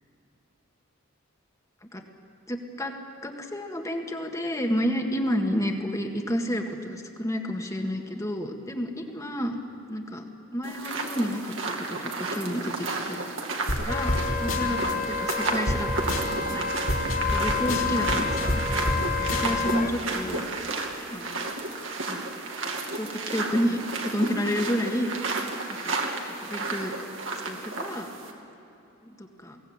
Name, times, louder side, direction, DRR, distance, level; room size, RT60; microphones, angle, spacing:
voice 1, 2.5-2.9 3.2-9.6 9.9-10.2 10.5-13.2 13.8-14.8 15.1-15.9 16.2-16.6 17.3-18.6 19.3-20.5 21.1-21.4 22.1-22.3 22.9-26.0 26.4-26.9 27.4-28.1 29.0-29.6, equal, 15° left, 3 dB, 1.8 m, -30 dB
sound 1, 10.6-28.3, right 3 dB, 65° right, 2.5 m, -32 dB
sound 2, 13.7-13.8 14.1-14.2 14.5-14.9 15.3-15.4 15.7-15.8 16.1-16.5 16.9-19.0 19.3-19.7, left 1 dB, 70° left, 3.4 m, -28 dB
Wind instrument woodwind instrument, 13.9-19.9, left 5 dB, 35° left, 1.4 m, -30 dB
22.5 x 18.0 x 8.8 m, 2.9 s
head